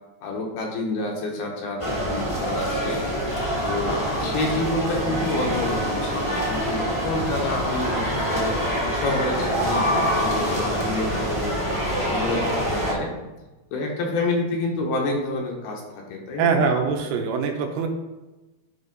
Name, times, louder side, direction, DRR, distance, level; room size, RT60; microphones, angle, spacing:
voice 1, 0.2-3.0 3.7-8.6 8.9-11.6 12.0-13.1 13.7-16.6, left 2 dB, 70° left, 0 dB, 2.9 m, -28 dB
sound 1, 1.8-12.9, equal, 25° left, 0.7 m, -25 dB
voice 2, 16.4-17.9, right 5 dB, 80° right, 3 dB, 2.8 m, -23 dB
10.5 x 4.0 x 5.3 m, 1.1 s
omnidirectional pair, 4.8 m